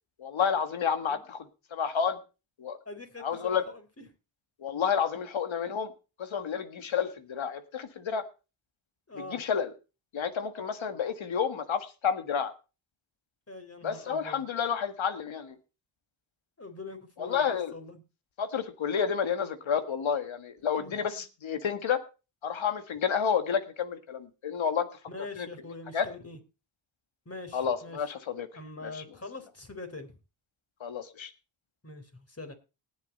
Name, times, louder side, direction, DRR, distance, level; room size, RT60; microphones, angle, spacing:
voice 1, 0.2-2.2 2.6-2.8 3.2-3.7 4.6-5.9 6.2-8.2 9.2-9.7 10.1-12.5 13.8-15.6 17.2-17.7 18.4-22.0 22.4-24.9 25.4-25.5 25.9-26.1 27.5-28.5 28.8-29.0 30.8-31.3, left 7 dB, 75° left, 10 dB, 1.7 m, -30 dB
voice 2, 2.9-4.1 9.1-9.4 13.5-14.4 16.6-18.0 20.7-21.2 25.1-26.4 27.3-28.1 28.5-30.2 31.8-32.5, left 2 dB, 30° left, 6 dB, 3.8 m, -44 dB
19.0 x 7.2 x 4.1 m, 0.31 s
cardioid pair, 55°, 47 cm